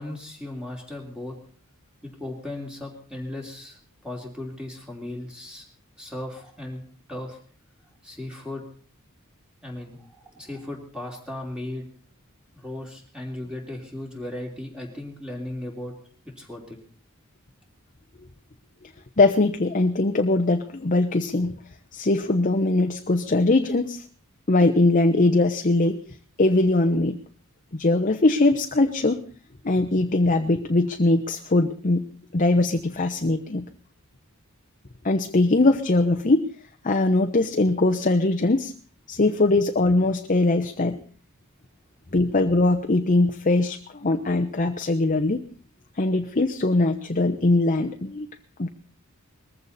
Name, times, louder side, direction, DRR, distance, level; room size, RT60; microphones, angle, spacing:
voice 1, 0.0-1.4 2.0-5.6 6.0-6.8 7.1-7.4 8.0-8.6 9.6-11.9 12.5-15.9 16.4-16.8, left 1 dB, 5° right, 0 dB, 3.1 m, -36 dB
voice 2, 19.2-21.5 21.9-24.0 24.5-26.0 26.4-27.2 27.7-29.2 29.6-32.1 32.3-33.7 35.0-36.5 36.8-38.7 39.1-41.0 42.1-45.4 46.0-48.3 48.6-48.7, left 2 dB, 40° left, 6 dB, 0.9 m, -21 dB
20.5 x 15.0 x 4.2 m, 0.42 s
head